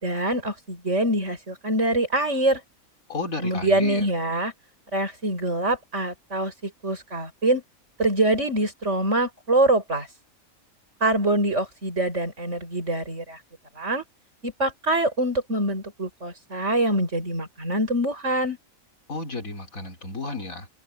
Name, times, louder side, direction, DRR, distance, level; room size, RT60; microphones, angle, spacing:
voice 1, 0.0-2.6 3.4-4.5 4.9-7.6 8.0-10.1 11.0-13.4 13.8-14.0 14.4-18.6, right 1 dB, 55° right, 6.9 m, -24 dB
voice 2, 3.1-4.1 19.1-20.7, left 3 dB, 70° left, 4.4 m, -32 dB
omnidirectional pair, 1.5 m